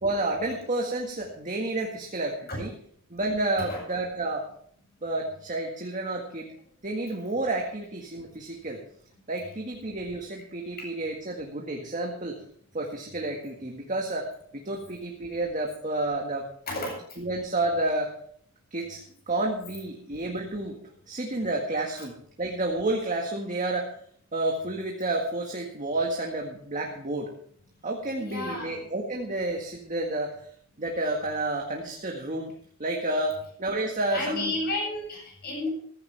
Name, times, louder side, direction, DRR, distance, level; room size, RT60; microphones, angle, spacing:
voice 1, 0.0-2.7 3.1-4.5 5.0-6.5 6.8-8.8 9.3-12.4 12.7-16.5 17.2-18.1 18.7-19.0 19.3-20.8 21.1-23.9 24.3-27.3 27.8-30.4 30.8-32.5 32.8-34.5, right 2 dB, 35° right, 0 dB, 1.8 m, -30 dB
voice 2, 28.2-28.8 34.1-35.7, left 2 dB, 45° left, 0 dB, 7.8 m, -31 dB
15.5 x 15.0 x 3.4 m, 0.62 s
head